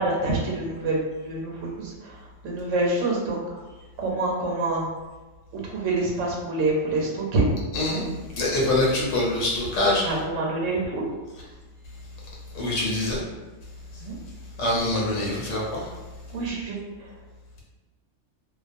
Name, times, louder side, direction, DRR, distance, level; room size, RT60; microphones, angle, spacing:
voice 1, 0.0-2.2 2.4-3.6 4.0-4.9 5.6-7.5 10.0-11.1 14.0-14.2 16.3-17.1, right 2 dB, 80° right, -2 dB, 1.0 m, -26 dB
voice 2, 7.7-8.0 8.4-10.2 12.5-13.2 14.6-15.9, left 1 dB, 80° left, -4 dB, 1.0 m, -24 dB
2.3 x 2.2 x 2.5 m, 1.2 s
omnidirectional pair, 1.3 m